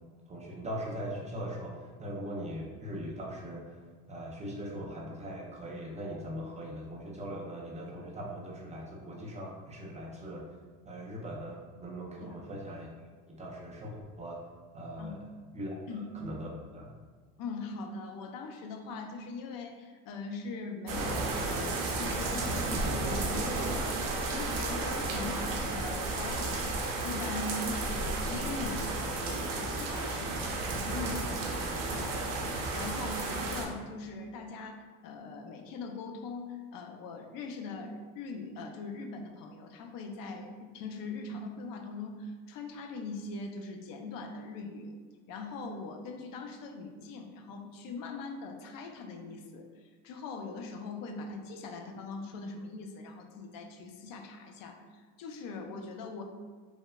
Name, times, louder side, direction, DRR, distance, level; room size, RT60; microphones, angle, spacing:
voice 1, 0.3-3.8 4.1-10.5 10.9-12.9 13.3-14.4 14.7-15.2 15.5-16.9, equal, 20° right, -2 dB, 0.3 m, -40 dB
voice 2, 17.4-28.9 29.2-44.9 45.3-56.2, left 3 dB, 60° left, 4 dB, 0.5 m, -41 dB
sound 1, 20.9-33.7, right 2 dB, 55° right, 0.6 m, -33 dB
3.0 x 2.0 x 2.2 m, 1.5 s
supercardioid pair, 95°, 39 cm